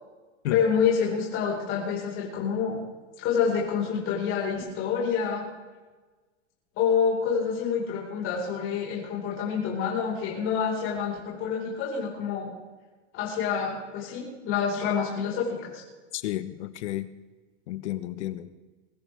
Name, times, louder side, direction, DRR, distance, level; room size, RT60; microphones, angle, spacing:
voice 1, 0.5-2.8 3.2-5.4 6.8-12.5 13.1-15.8, left 6 dB, 35° left, -4 dB, 5.1 m, -27 dB
voice 2, 16.1-17.1 17.7-18.5, left 14 dB, 75° left, 13 dB, 1.3 m, -32 dB
22.5 x 14.0 x 3.6 m, 1.3 s
supercardioid pair, 155°, 35 cm